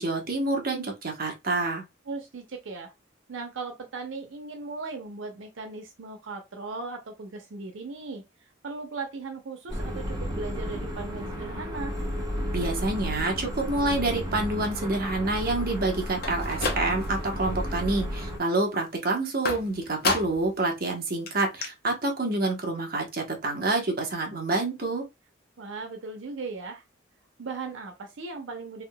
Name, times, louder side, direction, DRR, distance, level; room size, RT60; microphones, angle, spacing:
voice 1, 0.0-1.8 12.5-25.1, right 2 dB, 50° right, 1.0 m, -27 dB
voice 2, 2.1-2.9 3.3-8.2 8.6-12.0 25.6-26.8 27.4-28.8, right 3 dB, 90° right, 0.6 m, -37 dB
sound 1, 9.7-18.4, equal, 20° right, 1.2 m, -32 dB
sound 2, 16.1-17.3 17.7-18.2 19.4-20.6 20.9-21.0 21.3-21.4 21.6-21.7, left 3 dB, 55° left, 0.8 m, -31 dB
3.5 x 2.7 x 2.2 m
head